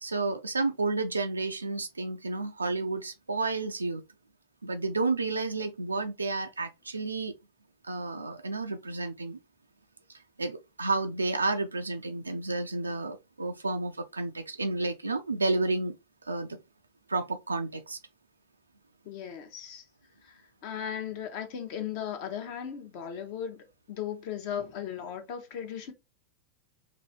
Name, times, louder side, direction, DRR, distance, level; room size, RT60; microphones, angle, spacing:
voice 1, 0.0-4.0 4.6-7.3 7.8-9.4 10.1-15.9 16.2-16.6 17.1-18.0, right 3 dB, 80° right, 0.3 m, -31 dB
voice 2, 19.0-19.8 20.2-25.9, left 9 dB, 45° left, 0.8 m, -37 dB
3.0 x 2.6 x 2.8 m
figure-of-eight pair, 90°, 0 cm